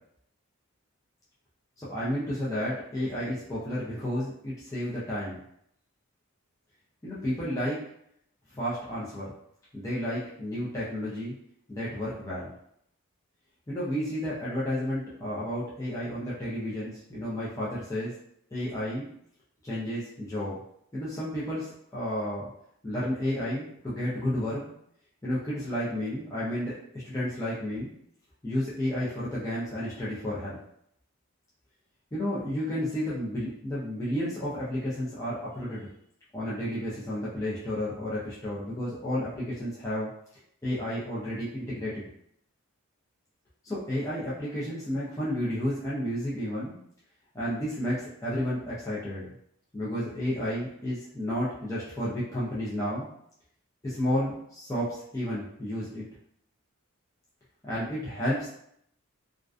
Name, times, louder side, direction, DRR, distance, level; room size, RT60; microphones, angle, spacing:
voice 1, 1.8-5.4 7.0-7.8 8.5-9.3 9.7-11.3 11.7-12.5 13.7-18.1 18.5-19.1 19.6-20.6 20.9-22.5 22.8-24.7 25.2-26.7 27.0-27.9 28.4-30.6 32.1-35.9 36.3-40.1 40.6-42.1 43.6-46.8 47.3-49.3 49.7-53.1 53.8-56.0 57.6-58.5, equal, 15° left, -9 dB, 0.4 m, -31 dB
2.4 x 2.2 x 2.4 m, 0.71 s
head